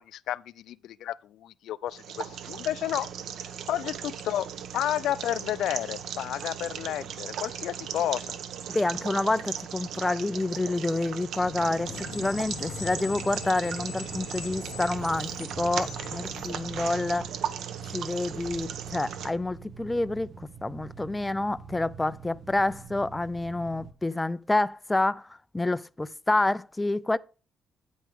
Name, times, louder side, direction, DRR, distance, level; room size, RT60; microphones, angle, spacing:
voice 1, 0.0-3.1 3.7-4.5 4.7-8.4, left 12 dB, 85° left, 0.4 m, -31 dB
sound 1, 1.9-19.3, right 8 dB, 75° right, 1.1 m, -37 dB
voice 2, 8.7-17.3 17.8-27.2, left 2 dB, 10° left, 0.4 m, -28 dB
Screech, 11.4-17.2, left 8 dB, 70° left, 2.1 m, -42 dB
sound 2, 12.0-23.9, right 5 dB, 40° right, 0.9 m, -46 dB
9.5 x 9.3 x 3.6 m
cardioid pair, 145°, 0 cm